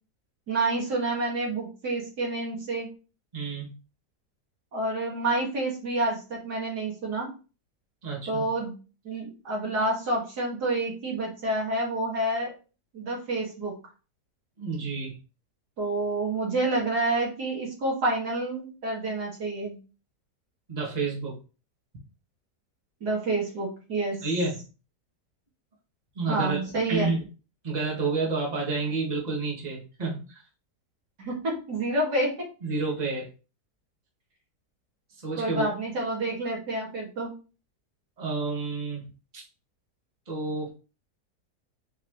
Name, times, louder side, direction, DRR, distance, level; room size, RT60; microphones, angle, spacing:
voice 1, 0.5-2.9 4.7-7.3 8.3-8.7 9.0-12.5 12.9-13.7 15.8-19.8 23.0-24.2 26.3-27.1 31.2-32.3 35.3-37.3, right 2 dB, 70° right, -2 dB, 2.8 m, -28 dB
voice 2, 3.3-3.7 8.0-8.5 14.6-15.2 20.7-21.4 24.2-24.6 26.2-27.2 27.6-30.3 32.6-33.3 35.2-35.7 38.2-39.0 39.3-39.4 40.3-40.7, right 3 dB, 25° right, -3 dB, 1.8 m, -29 dB
6.8 x 4.6 x 3.2 m, 0.34 s
omnidirectional pair, 1.8 m